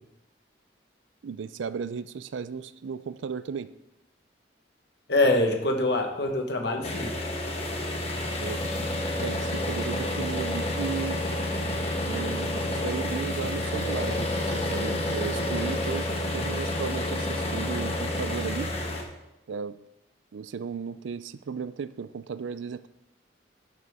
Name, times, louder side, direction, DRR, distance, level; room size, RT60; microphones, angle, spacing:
voice 1, 1.2-3.7 8.4-8.6 9.2-11.2 12.1-18.7 19.5-19.8 20.3-22.9, right 6 dB, 90° right, 15 dB, 0.4 m, -35 dB
voice 2, 5.1-7.1, left 2 dB, 65° left, 4 dB, 1.4 m, -24 dB
sound 1, 6.8-19.0, left 1 dB, 35° left, 1.3 m, -29 dB
12.0 x 6.8 x 3.6 m, 0.89 s
head